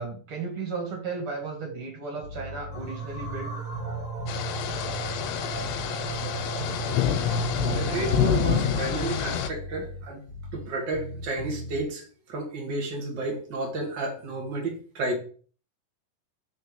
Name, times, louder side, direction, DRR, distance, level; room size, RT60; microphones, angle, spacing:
voice 1, 0.0-3.5, right 4 dB, 40° right, 0 dB, 2.6 m, -34 dB
Bass guitar, 2.2-3.5 3.7-5.9 6.1-8.3 8.5-10.7 10.9-11.8, left 1 dB, 40° left, 0.8 m, -38 dB
sound 1, 2.7-8.9, right 6 dB, 10° right, 0.3 m, -35 dB
sound 2, 4.3-9.5, left 9 dB, 90° left, 3.0 m, -27 dB
voice 2, 7.7-10.2 10.5-15.2, right 2 dB, 75° right, 0 dB, 1.0 m, -31 dB
5.9 x 4.2 x 6.3 m, 0.41 s
omnidirectional pair, 4.7 m